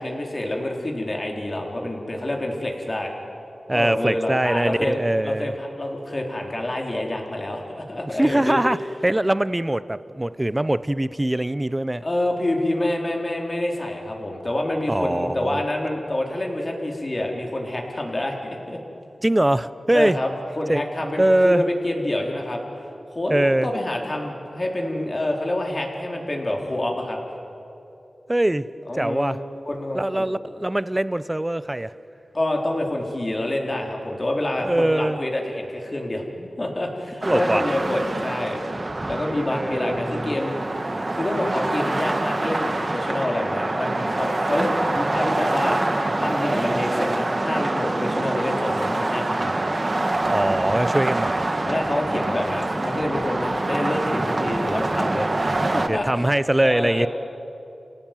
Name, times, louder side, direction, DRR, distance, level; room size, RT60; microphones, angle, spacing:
voice 1, 0.0-3.1 3.7-8.6 12.0-18.8 19.9-20.3 20.6-22.6 23.1-27.2 28.9-30.3 32.3-38.6 39.1-40.6 41.1-45.8 46.2-49.5 51.6-56.3 56.6-57.1, left 1 dB, 40° left, 1 dB, 4.3 m, -27 dB
voice 2, 3.7-5.5 8.1-8.8 9.0-12.0 14.9-15.6 19.2-20.2 20.7-20.8 21.2-21.6 23.3-23.7 28.3-28.7 28.9-29.4 29.9-31.9 34.6-35.2 37.2-37.6 39.5-40.4 50.3-51.5 55.9-57.1, right 1 dB, 20° right, 15 dB, 0.8 m, -22 dB
sound 1, 37.2-55.9, right 2 dB, 40° right, 1.7 m, -25 dB
28.0 x 17.5 x 9.4 m, 2.8 s
cardioid pair, 55°, 0 cm